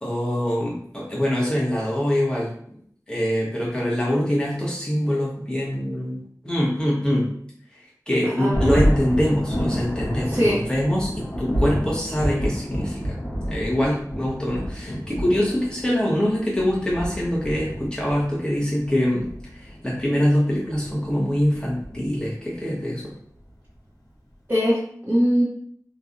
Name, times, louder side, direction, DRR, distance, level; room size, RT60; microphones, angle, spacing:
voice 1, 0.0-2.8 3.1-7.3 7.7-13.2 13.5-23.1, equal, 15° left, -5 dB, 1.2 m, -24 dB
voice 2, 8.2-8.8 10.3-10.6 24.5-25.4, equal, 35° right, -9 dB, 1.0 m, -22 dB
Thunder, 8.5-22.5, equal, 70° left, 0.9 m, -29 dB
3.1 x 2.5 x 2.6 m, 0.63 s
wide cardioid pair, 50°, 7 cm